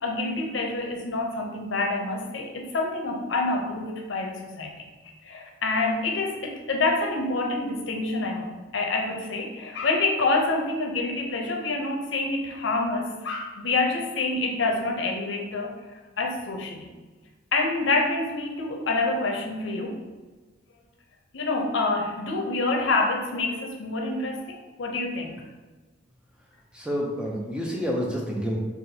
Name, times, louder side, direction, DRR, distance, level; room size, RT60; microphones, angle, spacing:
voice 1, 0.0-4.9 5.2-15.7 16.2-16.9 17.5-20.0 21.3-25.4, left 3 dB, 80° left, 1 dB, 0.6 m, -27 dB
voice 2, 26.7-28.6, equal, 5° right, -2 dB, 0.5 m, -28 dB
5.7 x 2.4 x 2.7 m, 1.3 s
head